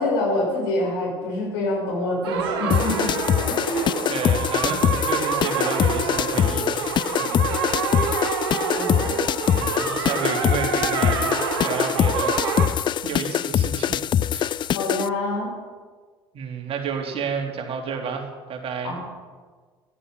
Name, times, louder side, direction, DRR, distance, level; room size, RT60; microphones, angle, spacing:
voice 1, 0.0-3.1 3.5-4.1 4.6-4.8 8.7-9.2 14.7-15.5 18.8-19.0, left 1 dB, 70° left, -2 dB, 6.1 m, -26 dB
sound 1, 2.2-12.7, right 6 dB, 70° right, 2.4 m, -27 dB
sound 2, 2.7-15.1, left 10 dB, 35° left, 0.4 m, -23 dB
voice 2, 4.1-6.9 7.2-7.4 9.6-11.4 11.6-12.3 13.0-14.0 14.3-14.5 16.3-19.0, right 6 dB, 50° right, 2 dB, 3.0 m, -30 dB
13.5 x 12.0 x 7.0 m, 1.5 s
figure-of-eight pair, 60°, 13 cm